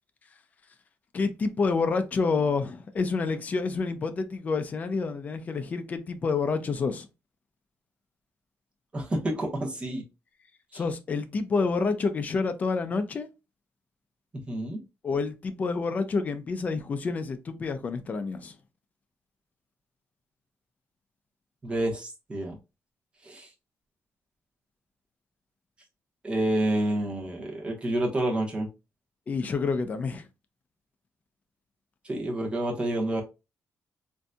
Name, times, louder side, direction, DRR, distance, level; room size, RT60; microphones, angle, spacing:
voice 1, 1.1-7.1 10.7-13.3 15.0-18.6 29.3-30.3, left 4 dB, 30° left, 0.4 m, -28 dB
voice 2, 8.9-10.0 10.7-10.8 14.3-14.8 21.6-22.6 23.2-23.5 26.2-28.7 32.0-33.2, right 1 dB, 20° right, 1.0 m, -29 dB
3.8 x 2.6 x 2.2 m
cardioid pair, 155°, 5 cm